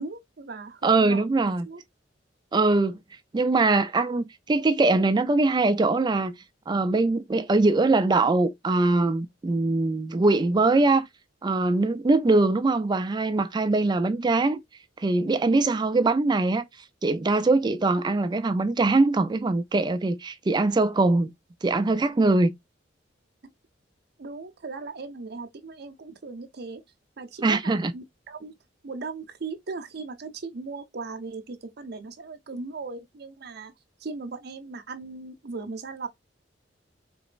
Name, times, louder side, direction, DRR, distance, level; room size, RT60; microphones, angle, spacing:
voice 1, 0.0-1.8 24.2-26.8 27.2-28.5 28.8-33.7 34.0-36.1, right 3 dB, 60° right, 0.7 m, -38 dB
voice 2, 0.8-1.7 2.5-3.0 3.3-6.3 6.7-11.1 11.4-14.6 15.0-16.6 17.0-21.3 21.6-22.5 27.4-27.9, right 3 dB, 25° right, 0.4 m, -22 dB
4.0 x 3.0 x 2.5 m
head